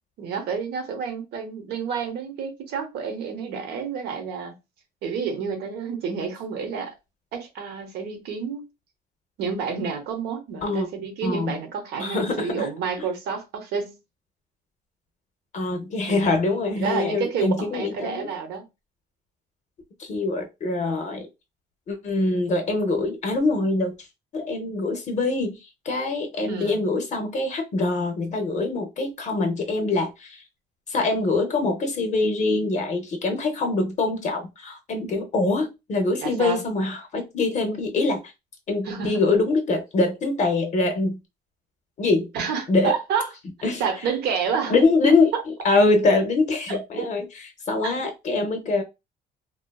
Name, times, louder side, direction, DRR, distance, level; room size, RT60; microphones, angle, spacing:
voice 1, 0.2-4.5 5.0-7.0 7.3-8.7 9.4-14.0 16.1-16.3 16.8-18.7 26.5-26.8 36.2-36.6 38.8-39.2 42.3-43.3 43.8-44.7 45.3-45.4 46.7-47.1 47.8-48.0, right 6 dB, 75° right, 0.8 m, -29 dB
voice 2, 11.2-11.6 12.0-12.7 15.5-18.3 20.0-21.3 21.9-23.9 24.3-30.4 30.9-38.2 38.7-41.2 42.0-42.3 42.7-42.9 43.6-43.8 44.7-48.8, left 3 dB, 45° left, 0.6 m, -24 dB
2.5 x 2.3 x 2.2 m
cardioid pair, 110°, 17 cm